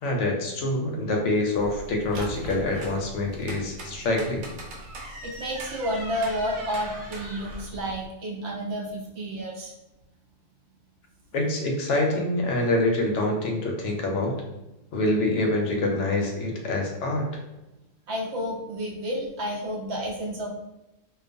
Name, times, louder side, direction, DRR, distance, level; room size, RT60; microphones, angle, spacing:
voice 1, 0.0-4.4 11.3-14.3 14.9-17.3, left 2 dB, 70° left, 1 dB, 0.8 m, -26 dB
sound 1, 1.6-8.1, right 1 dB, 90° right, 1.0 m, -40 dB
voice 2, 5.2-9.7 18.1-20.5, equal, 65° right, -2 dB, 0.8 m, -31 dB
2.3 x 2.3 x 2.5 m, 0.95 s
omnidirectional pair, 1.4 m